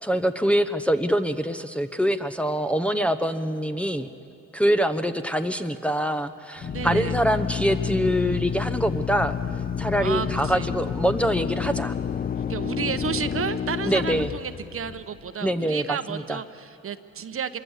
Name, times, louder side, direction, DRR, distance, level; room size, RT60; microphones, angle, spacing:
voice 1, 0.0-4.1 4.5-9.4 9.8-11.9 13.9-14.3 15.4-16.4, equal, 5° left, 7 dB, 0.9 m, -24 dB
Drill, 6.6-15.2, left 7 dB, 30° left, 0.5 m, -29 dB
voice 2, 6.7-7.1 10.0-10.7 12.5-17.6, right 7 dB, 45° right, 11 dB, 1.0 m, -32 dB
26.0 x 22.5 x 8.2 m, 2.7 s
cardioid pair, 90°, 30 cm